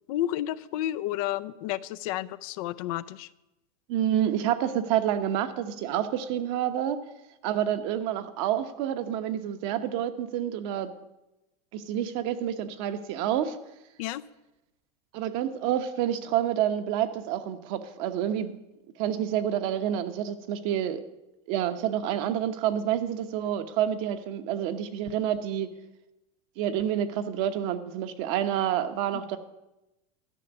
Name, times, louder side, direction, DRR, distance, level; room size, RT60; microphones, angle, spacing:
voice 1, 0.1-3.3 14.0-14.2, left 13 dB, 60° left, 14 dB, 0.5 m, -31 dB
voice 2, 3.9-7.0 7.4-10.9 11.7-13.6 15.1-18.6 19.0-21.0 21.5-25.7 26.6-29.4, right 10 dB, 55° right, 8 dB, 1.1 m, -28 dB
12.5 x 5.9 x 9.2 m, 0.94 s
supercardioid pair, 135°, 20 cm